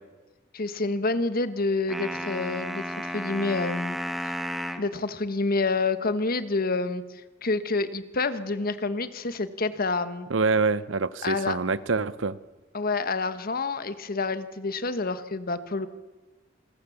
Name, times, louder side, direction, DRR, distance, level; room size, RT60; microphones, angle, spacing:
voice 1, 0.5-4.0 4.2-4.4 4.8-7.0 7.4-10.3 11.2-11.6 12.7-15.9, left 3 dB, 50° left, 12 dB, 1.3 m, -28 dB
sound 1, 1.9-4.9, equal, ahead, 1.4 m, -33 dB
voice 2, 10.3-12.4, right 4 dB, 80° right, 16 dB, 0.8 m, -25 dB
28.0 x 20.0 x 7.1 m, 1.2 s
head